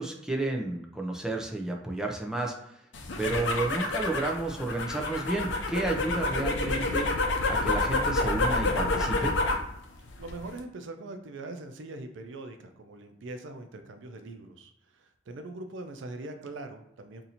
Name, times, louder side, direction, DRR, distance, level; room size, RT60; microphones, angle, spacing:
voice 1, 0.0-2.5 3.2-7.1 7.5-9.4, right 2 dB, 5° right, 0 dB, 0.5 m, -31 dB
sound 1, 2.9-9.7 10.0-10.6, left 2 dB, 70° left, 0.6 m, -28 dB
voice 2, 10.0-17.2, right 2 dB, 85° right, 7 dB, 0.5 m, -42 dB
2.7 x 2.6 x 4.1 m, 0.78 s
head